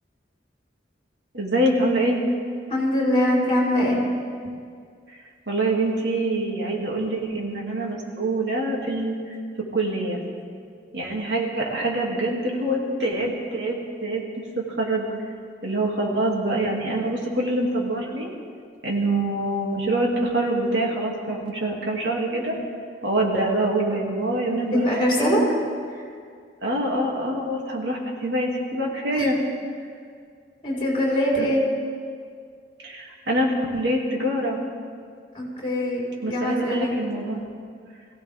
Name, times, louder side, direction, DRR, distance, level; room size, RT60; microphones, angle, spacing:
voice 1, 1.3-2.2 5.5-9.1 9.7-10.2 10.9-14.2 14.6-15.1 15.6-18.3 18.8-22.6 23.0-24.9 25.2-25.4 26.6-29.4 31.4-31.5 32.8-34.6 36.2-37.4, right 1 dB, 70° right, -2 dB, 2.8 m, -25 dB
voice 2, 2.7-4.0 24.7-25.4 25.9-26.0 29.1-29.4 30.6-31.6 35.3-37.0, equal, 30° left, -5 dB, 4.8 m, -23 dB
22.5 x 16.0 x 3.7 m, 2.1 s
head